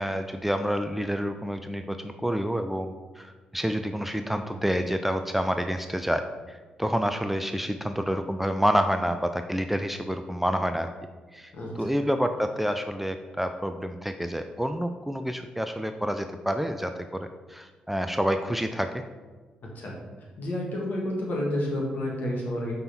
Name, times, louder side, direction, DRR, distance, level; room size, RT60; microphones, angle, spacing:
voice 1, 0.0-6.2 6.5-10.9 11.3-18.9, equal, 5° right, 7 dB, 0.4 m, -28 dB
voice 2, 20.4-22.7, left 1 dB, 55° left, -2 dB, 1.7 m, -30 dB
5.4 x 4.1 x 4.2 m, 1.4 s
hypercardioid pair, 40°, 4 cm